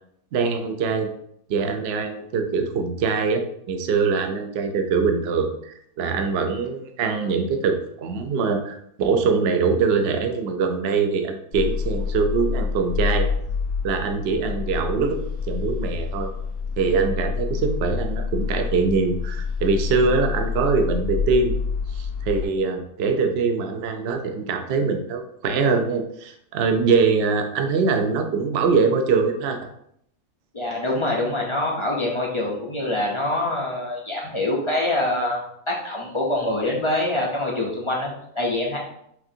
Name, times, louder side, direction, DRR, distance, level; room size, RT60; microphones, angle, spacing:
voice 1, 0.3-1.1 1.5-13.3 13.8-15.2 15.5-16.3 16.8-21.5 21.9-29.6, right 5 dB, 60° right, 6 dB, 0.6 m, -23 dB
sound 1, 11.5-22.5, left 5 dB, 85° left, 1.8 m, -27 dB
voice 2, 30.5-38.8, left 1 dB, 40° left, -3 dB, 0.4 m, -25 dB
5.9 x 2.5 x 2.7 m, 0.71 s
omnidirectional pair, 1.5 m